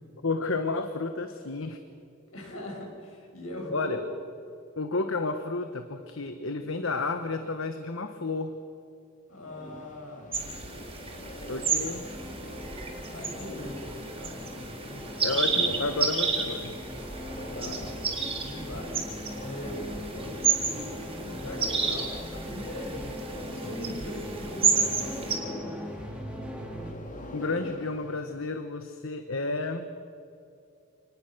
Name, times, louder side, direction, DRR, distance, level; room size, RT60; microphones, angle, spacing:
voice 1, 0.2-1.8 3.7-4.0 4.8-8.6 11.5-12.1 15.2-16.7 27.3-29.9, left 3 dB, 70° left, 8 dB, 1.1 m, -31 dB
voice 2, 2.3-4.0 9.3-10.3 13.0-15.1 17.5-17.9 18.4-18.9 19.3-19.8 20.1-23.2 23.5-25.4, left 1 dB, 85° left, 0 dB, 7.0 m, -40 dB
sound 1, 9.3-28.2, left 1 dB, 40° left, 2.6 m, -44 dB
sound 2, 10.3-25.3, right 5 dB, 25° right, 3.9 m, -31 dB
sound 3, 11.8-26.9, equal, 5° right, 2.6 m, -41 dB
28.0 x 20.0 x 6.5 m, 2.5 s
head